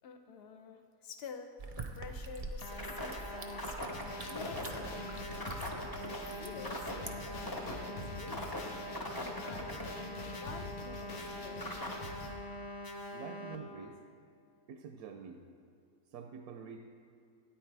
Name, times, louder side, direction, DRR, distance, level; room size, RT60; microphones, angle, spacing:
voice 1, 0.0-5.7 6.1-8.8 9.2-11.7, left 6 dB, 55° left, 6 dB, 0.8 m, -50 dB
sound 1, 1.6-7.8, right 3 dB, 45° right, 0.4 m, -47 dB
sound 2, 2.6-13.6, equal, 25° left, 0.5 m, -41 dB
sound 3, 3.9-12.3, left 3 dB, 80° left, 1.5 m, -46 dB
voice 2, 13.1-14.0 14.7-15.4 16.1-16.8, right 6 dB, 75° right, 5 dB, 1.0 m, -47 dB
13.0 x 9.3 x 3.3 m, 2.4 s
omnidirectional pair, 1.6 m